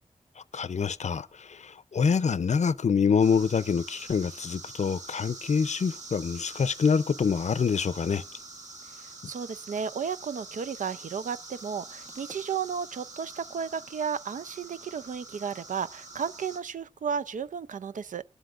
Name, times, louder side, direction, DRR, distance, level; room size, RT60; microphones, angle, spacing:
voice 1, 0.5-8.2, left 6 dB, 65° left, 0.5 m, -26 dB
sound 1, 3.2-16.6, right 3 dB, 65° right, 2.2 m, -45 dB
voice 2, 8.9-18.2, right 6 dB, 90° right, 0.5 m, -33 dB
20.5 x 11.5 x 2.5 m
wide cardioid pair, 80°, 13 cm